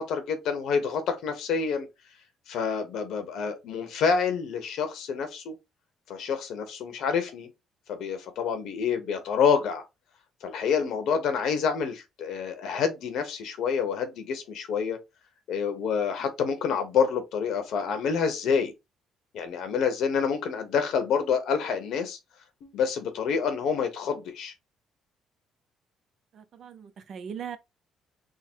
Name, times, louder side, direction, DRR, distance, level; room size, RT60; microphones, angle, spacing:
voice 1, 0.0-1.9 2.5-5.5 6.1-7.5 7.9-9.8 10.4-15.0 15.5-18.7 19.3-22.2 22.6-24.5, left 6 dB, 70° left, 1.1 m, -27 dB
voice 2, 26.3-27.6, right 7 dB, 50° right, 0.5 m, -39 dB
3.8 x 2.1 x 4.4 m
cardioid pair, 135°, 0 cm